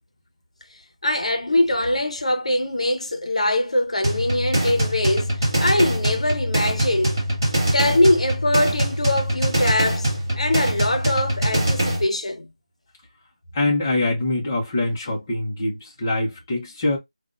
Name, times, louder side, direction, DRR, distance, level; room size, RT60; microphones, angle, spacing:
voice 1, 1.0-7.2 7.7-10.1 10.4-12.5, left 1 dB, 65° left, 0.9 m, -22 dB
sound 1, 4.0-12.0, right 1 dB, 35° right, 2.0 m, -23 dB
voice 2, 13.5-17.0, left 2 dB, 15° left, 0.9 m, -24 dB
3.4 x 2.4 x 2.5 m
figure-of-eight pair, 175°, 4 cm